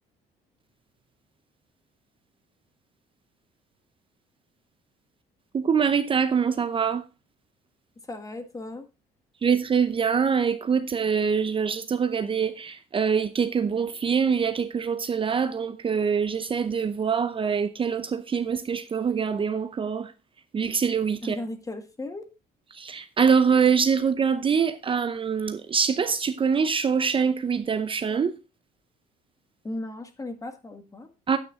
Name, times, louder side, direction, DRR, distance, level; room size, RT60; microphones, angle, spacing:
voice 1, 5.5-7.1 9.4-20.1 20.5-21.4 22.7-28.4 31.3-31.4, right 6 dB, 30° right, 0.7 m, -24 dB
voice 2, 8.1-8.8 21.2-22.3 29.6-31.1, left 2 dB, 20° left, 1.7 m, -36 dB
9.3 x 8.8 x 3.7 m
cardioid pair, 110°, 17 cm